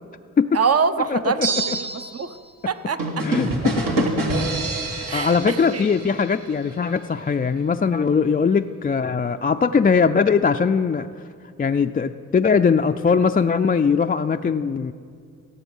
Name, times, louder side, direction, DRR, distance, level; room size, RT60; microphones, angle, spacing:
voice 1, 0.5-1.4 1.6-2.3 2.7-3.3 4.3-4.4 5.1-5.9, right 5 dB, 45° right, 11 dB, 0.7 m, -24 dB
voice 2, 1.1-1.8 3.2-4.1 4.9-11.1 11.6-14.9, left 5 dB, 25° left, 7 dB, 0.4 m, -21 dB
sound 1, 1.4-2.4, right 5 dB, 85° right, 2.4 m, -27 dB
sound 2, 3.0-6.7, right 1 dB, 70° right, 2.0 m, -26 dB
16.5 x 7.1 x 5.4 m, 2.3 s
cardioid pair, 50°, 34 cm